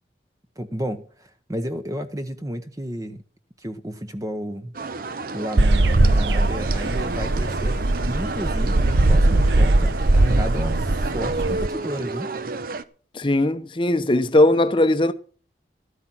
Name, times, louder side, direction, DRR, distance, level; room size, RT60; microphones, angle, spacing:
voice 1, 0.6-3.2 3.6-4.7 5.3-12.3, equal, 20° right, 0.9 m, -32 dB
sound 1, 4.7-12.8, right 3 dB, 50° right, 0.8 m, -31 dB
sound 2, 5.6-11.7, right 2 dB, 80° right, 0.9 m, -20 dB
voice 2, 13.1-15.1, left 1 dB, 30° left, 0.8 m, -19 dB
13.5 x 9.7 x 6.0 m
head